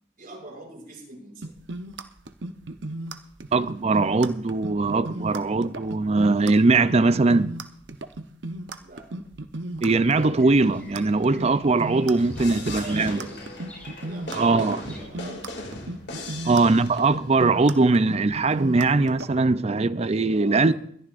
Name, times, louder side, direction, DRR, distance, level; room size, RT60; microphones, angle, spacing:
voice 1, 0.2-1.5 8.8-9.1 12.5-13.7 14.0-15.8 16.5-16.9 20.3-20.7, right 1 dB, 50° right, 6.6 m, -42 dB
sound 1, 1.4-19.3, right 2 dB, 65° right, 0.9 m, -35 dB
voice 2, 3.5-7.5 9.8-13.2 14.3-14.8 16.4-20.7, right 3 dB, 35° right, 0.5 m, -21 dB
Bird vocalization bird call bird song, 9.9-15.0, left 1 dB, 10° left, 7.0 m, -48 dB
sound 2, 12.2-17.2, left 2 dB, 60° left, 2.5 m, -38 dB
22.0 x 13.0 x 2.6 m
head